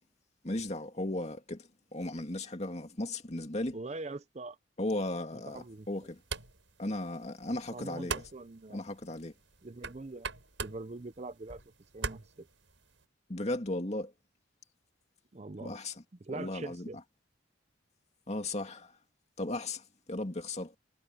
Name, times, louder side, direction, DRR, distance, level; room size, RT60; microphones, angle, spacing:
voice 1, 0.4-3.8 4.8-6.2 6.8-8.2 8.7-9.3 13.3-14.1 15.6-16.0 16.3-16.9 18.3-18.9 19.4-20.7, left 1 dB, 35° left, 2.4 m, -36 dB
voice 2, 3.7-4.6 5.5-5.9 7.7-8.8 9.6-10.3 10.6-11.6 11.9-12.5 15.3-15.8 16.2-17.0, right 2 dB, 35° right, 0.6 m, -43 dB
sound 1, 5.5-13.0, right 4 dB, 80° right, 6.1 m, -44 dB
head